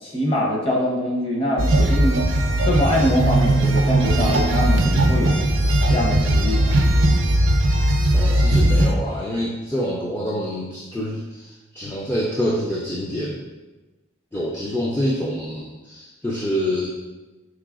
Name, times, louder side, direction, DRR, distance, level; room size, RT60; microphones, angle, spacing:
voice 1, 0.0-2.2 2.7-5.4 5.9-6.8, equal, 30° left, -2 dB, 0.8 m, -23 dB
sound 1, 1.6-8.9, right 1 dB, 90° right, 0.5 m, -18 dB
voice 2, 8.1-13.5 14.3-16.9, equal, 10° left, -4 dB, 0.3 m, -26 dB
4.7 x 3.9 x 2.4 m, 1.2 s
head